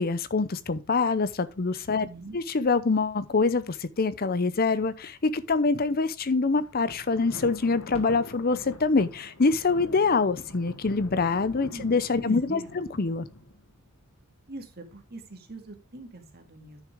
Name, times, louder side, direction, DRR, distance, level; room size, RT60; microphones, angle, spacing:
voice 1, 0.0-2.1 2.3-13.3, left 4 dB, 40° left, 0.6 m, -25 dB
voice 2, 1.9-2.4 11.7-11.9 12.2-12.8 14.5-16.8, right 2 dB, 45° right, 2.1 m, -43 dB
Thunder, 6.6-13.8, left 1 dB, 65° left, 1.3 m, -45 dB
10.0 x 6.2 x 3.5 m
head